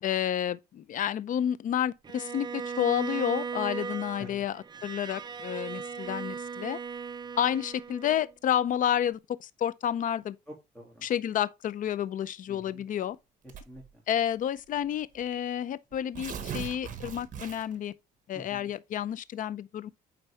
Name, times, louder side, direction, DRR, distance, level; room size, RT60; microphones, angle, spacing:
voice 1, 0.0-6.8 7.4-10.4 11.0-13.2 14.1-17.9 18.3-19.9, left 10 dB, 50° left, 0.6 m, -30 dB
Bowed string instrument, 2.0-8.3, right 6 dB, 25° right, 0.6 m, -37 dB
voice 2, 10.5-11.1 12.5-12.8 13.4-14.0 18.3-18.7, equal, 5° left, 2.4 m, -47 dB
Tearing, 13.5-13.9 14.8-14.9 15.2-15.3 15.9-17.9, right 8 dB, 50° right, 1.3 m, -39 dB
9.2 x 4.0 x 3.3 m
cardioid pair, 110°, 17 cm